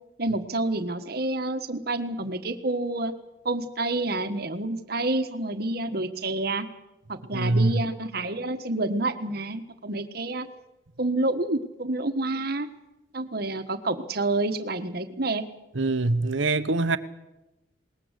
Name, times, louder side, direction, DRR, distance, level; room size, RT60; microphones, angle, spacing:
voice 1, 0.2-3.1 3.4-6.7 7.1-10.5 11.0-12.7 13.1-15.4, right 2 dB, 55° right, 9 dB, 1.5 m, -28 dB
voice 2, 7.3-7.7 15.7-17.0, right 2 dB, 80° right, 12 dB, 1.1 m, -23 dB
21.0 x 19.5 x 8.2 m, 0.97 s
head